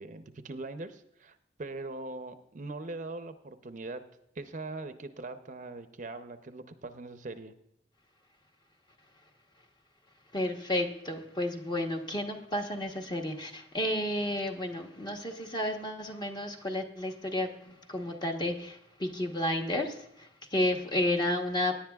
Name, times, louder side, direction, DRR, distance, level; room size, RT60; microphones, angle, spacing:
voice 1, 0.0-4.0 4.4-7.5, right 2 dB, 45° right, 9 dB, 0.6 m, -41 dB
voice 2, 10.3-21.7, left 1 dB, 25° left, 3 dB, 1.1 m, -32 dB
17.5 x 10.0 x 2.3 m, 0.80 s
head